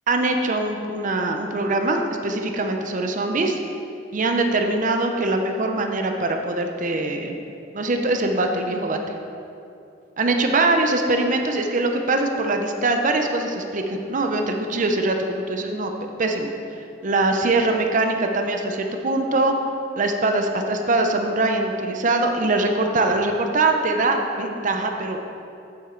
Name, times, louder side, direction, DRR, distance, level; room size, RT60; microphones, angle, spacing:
voice 1, 0.1-3.6 4.1-7.4 7.7-9.0 10.2-15.9 16.2-16.5 17.0-19.6 20.0-25.2, right 2 dB, 45° right, 4 dB, 0.6 m, -22 dB
8.7 x 7.5 x 3.8 m, 2.7 s
head